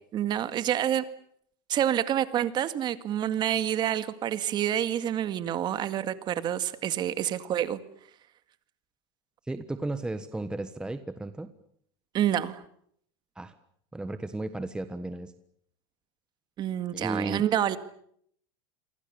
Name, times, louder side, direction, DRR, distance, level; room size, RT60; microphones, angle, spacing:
voice 1, 0.1-1.0 1.7-7.8 12.1-12.6 16.6-17.8, right 10 dB, 35° right, 11 dB, 2.0 m, -28 dB
voice 2, 9.5-11.5 13.4-13.5 13.9-15.3 16.9-17.4, right 2 dB, 5° right, 10 dB, 1.3 m, -34 dB
28.5 x 24.0 x 6.9 m, 0.67 s
supercardioid pair, 130°, 13 cm